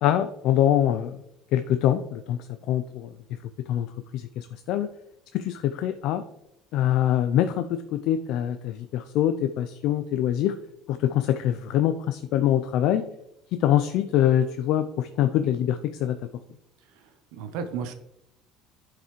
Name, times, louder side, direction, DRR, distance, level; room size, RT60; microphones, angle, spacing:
voice 1, 0.0-1.2 1.5-2.4 2.7-3.1 3.7-3.9 4.1-4.9 5.3-6.2 6.7-10.5 10.9-13.0 13.6-16.2, left 11 dB, 65° left, 9 dB, 0.4 m, -24 dB
voice 2, 16.9-17.9, right 6 dB, 80° right, 7 dB, 0.6 m, -34 dB
10.0 x 4.7 x 3.1 m, 0.83 s
cardioid pair, 130°, 0 cm